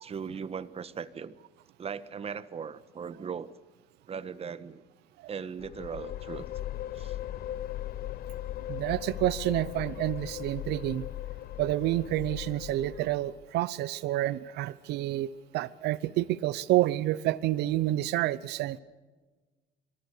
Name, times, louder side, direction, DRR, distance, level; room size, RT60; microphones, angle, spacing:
voice 1, 0.0-1.3 1.8-3.5 4.1-4.8 5.3-6.5 6.9-7.2, right 6 dB, 35° right, 15 dB, 1.3 m, -38 dB
sound 1, 5.6-13.4, left 13 dB, 65° left, 0.7 m, -38 dB
voice 2, 8.7-11.0 11.6-18.8, right 15 dB, 80° right, 18 dB, 0.8 m, -29 dB
26.5 x 22.5 x 6.7 m, 1.3 s
cardioid pair, 110°, 17 cm